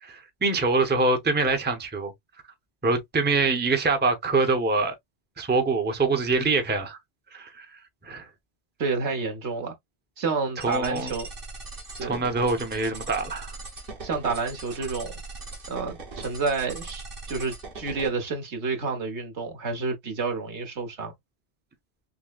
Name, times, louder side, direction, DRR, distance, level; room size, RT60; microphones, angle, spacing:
voice 1, 0.0-2.1 2.8-4.9 5.4-7.0 7.3-7.7 8.0-8.3 10.6-11.1 12.0-13.5, right 3 dB, 10° right, 0.6 m, -24 dB
voice 2, 8.8-9.7 10.2-11.3 12.0-12.2 14.0-15.2 15.7-21.1, right 4 dB, 75° right, 1.4 m, -29 dB
sound 1, 10.6-18.1, right 3 dB, 55° right, 1.2 m, -40 dB
6.1 x 2.0 x 2.3 m
omnidirectional pair, 1.1 m